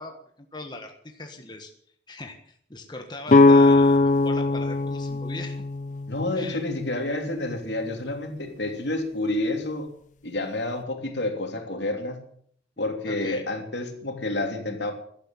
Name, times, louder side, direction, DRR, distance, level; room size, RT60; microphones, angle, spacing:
voice 1, 0.0-1.7 2.1-5.6 6.3-6.6 13.1-13.4, left 2 dB, 25° left, 4 dB, 1.5 m, -40 dB
sound 1, 3.3-7.1, left 2 dB, 45° left, 0.6 m, -20 dB
voice 2, 6.1-9.9 10.2-12.2 12.8-14.9, left 2 dB, 75° left, 4 dB, 3.2 m, -29 dB
16.0 x 12.0 x 7.3 m, 0.62 s
head